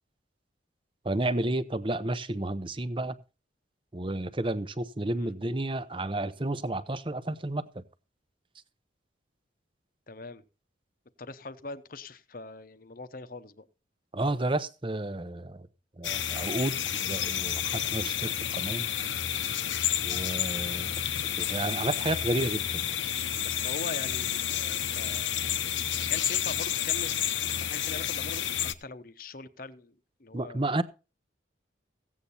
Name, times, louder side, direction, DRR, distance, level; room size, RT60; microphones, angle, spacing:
voice 1, 1.0-3.2 3.9-7.8 14.1-15.7 16.0-18.9 20.0-21.0 21.4-23.0 25.5-25.6 30.3-30.8, right 1 dB, 25° right, 0.8 m, -31 dB
voice 2, 10.1-10.4 11.2-13.7 23.4-25.3 26.0-27.1 27.5-30.7, left 3 dB, 45° left, 0.9 m, -42 dB
sound 1, 16.0-28.7, left 10 dB, 75° left, 0.9 m, -30 dB
16.0 x 8.5 x 4.2 m
head